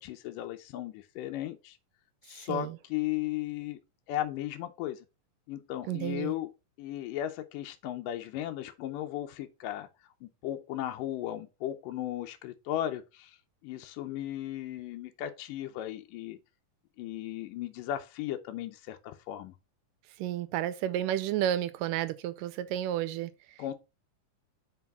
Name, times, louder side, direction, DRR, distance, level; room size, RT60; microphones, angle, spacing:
voice 1, 0.0-1.8 2.2-3.8 4.1-5.1 5.5-6.5 6.8-9.9 10.2-13.4 13.6-16.4 17.0-19.6 23.6-23.7, left 12 dB, 80° left, 2.2 m, -36 dB
voice 2, 2.3-2.8 5.9-6.3 20.2-23.3, right 11 dB, 80° right, 2.1 m, -31 dB
5.9 x 4.6 x 5.4 m
omnidirectional pair, 3.9 m